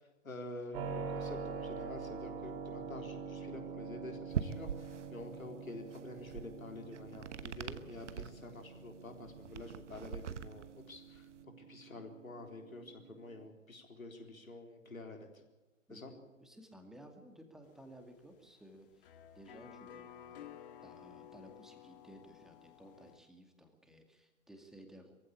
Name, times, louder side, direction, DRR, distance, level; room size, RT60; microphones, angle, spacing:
voice 1, 0.2-15.4 15.9-16.1, left 2 dB, 80° left, 4 dB, 4.0 m, -48 dB
Keyboard (musical), 0.7-13.5, right 5 dB, 40° right, 3.4 m, -46 dB
sound 1, 4.3-11.4, right 8 dB, 60° right, 1.1 m, -43 dB
voice 2, 15.9-20.5 20.8-25.2, right 1 dB, ahead, 4 dB, 2.2 m, -56 dB
sound 2, 17.6-23.2, left 9 dB, 40° left, 1.7 m, -54 dB
22.0 x 15.5 x 8.7 m, 1.1 s
figure-of-eight pair, 120°, 41 cm